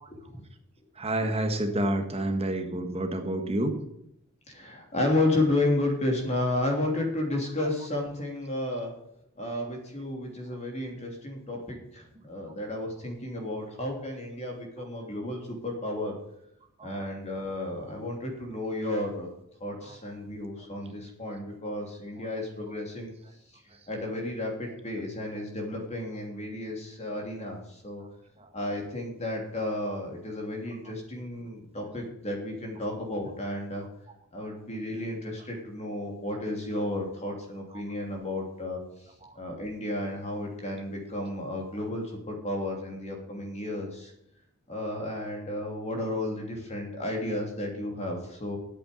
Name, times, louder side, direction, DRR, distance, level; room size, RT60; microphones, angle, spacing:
voice 1, 0.1-0.4 4.5-8.9 9.4-16.1 16.8-19.3 19.6-23.1 23.9-28.0 28.5-33.8 34.3-38.8 39.3-44.1 44.7-48.6, left 1 dB, 30° left, 1 dB, 3.0 m, -32 dB
voice 2, 1.0-3.7, right 1 dB, 25° right, 5 dB, 1.5 m, -28 dB
8.6 x 7.9 x 9.2 m, 0.77 s
head